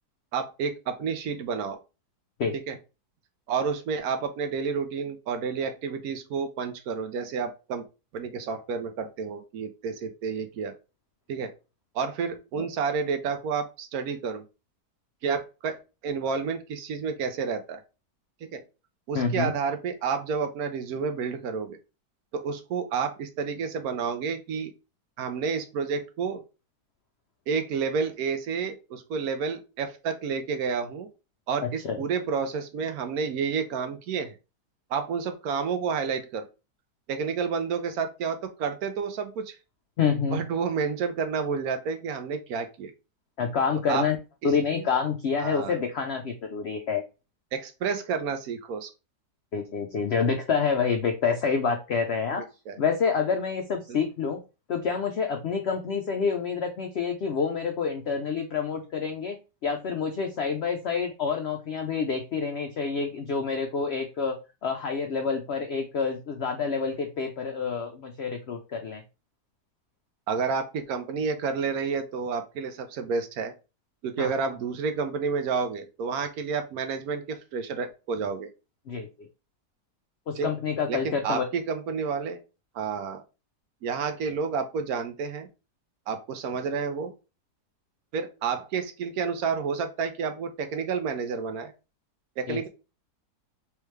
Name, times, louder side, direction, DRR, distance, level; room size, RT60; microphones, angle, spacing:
voice 1, 0.3-1.8 2.7-2.8 3.5-7.8 8.1-10.7 11.3-11.5 11.9-14.4 15.2-15.8 16.0-17.8 18.4-18.6 19.1-21.8 22.3-24.7 25.2-26.4 27.5-31.1 31.5-34.3 34.9-36.4 37.1-39.6 40.3-42.9 43.9-44.1 44.7-44.9 45.4-45.7 47.5-48.9 52.7-52.8 53.9-54.0 70.3-73.5 74.0-78.5 80.4-80.5 80.9-82.4 82.7-83.2 83.8-85.5 86.1-87.1 88.1-91.7 92.4-92.7, right 5 dB, 70° right, 7 dB, 1.0 m, -30 dB
voice 2, 19.1-19.5 31.6-32.0 40.0-40.4 43.4-44.2 44.4-47.0 49.5-52.4 52.8-54.4 54.7-59.4 59.6-64.4 64.6-69.0 74.2-74.3 78.9-79.3 80.3-81.4 92.5-92.7, left 5 dB, 80° left, 4 dB, 0.5 m, -28 dB
3.4 x 3.3 x 3.1 m, 0.29 s
omnidirectional pair, 1.7 m